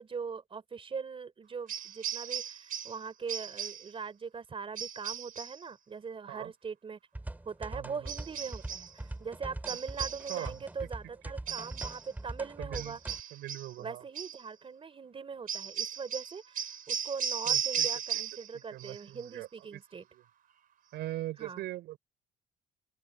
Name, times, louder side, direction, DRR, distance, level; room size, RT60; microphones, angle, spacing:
voice 1, 0.0-7.0 7.5-13.0 13.8-20.0 21.4-21.6, right 5 dB, 35° right, 3.8 m, -41 dB
sound 1, 1.7-3.0 3.3-3.9 4.7-5.6 8.1-8.9 9.6-10.6 11.5-12.1 12.7-13.7 14.1-14.4 15.5-18.5 18.8-19.3, right 8 dB, 55° right, 4.1 m, -36 dB
sound 2, 7.1-13.2, right 2 dB, 10° right, 2.4 m, -42 dB
voice 2, 7.7-8.1 10.3-10.6 12.6-13.0 13.3-14.0 17.5-17.9 18.5-20.2 20.9-22.0, right 15 dB, 80° right, 5.3 m, -41 dB
open air
cardioid pair, 110°, 17 cm